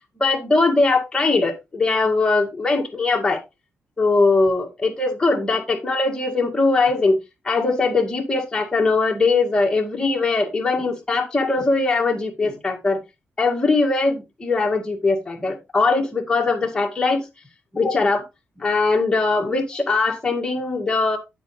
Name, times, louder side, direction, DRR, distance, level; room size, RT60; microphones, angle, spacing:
voice 1, 0.2-3.4 4.0-7.2 7.4-13.0 13.4-17.2 17.7-18.3 18.6-21.2, left 3 dB, 20° left, 2.1 m, -20 dB
8.7 x 8.1 x 3.2 m
cardioid pair, 125°, 4 cm